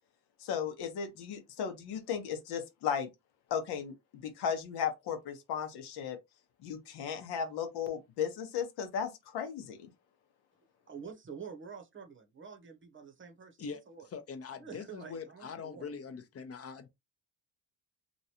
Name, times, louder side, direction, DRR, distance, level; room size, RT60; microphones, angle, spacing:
voice 1, 0.4-3.1 3.5-3.9 4.2-6.2 6.6-9.9, left 7 dB, 75° left, 1.0 m, -35 dB
voice 2, 10.9-14.1 14.6-15.9, right 6 dB, 30° right, 0.8 m, -48 dB
voice 3, 14.1-16.9, left 5 dB, 35° left, 0.7 m, -43 dB
3.0 x 2.6 x 2.8 m
cardioid pair, 90°, 40 cm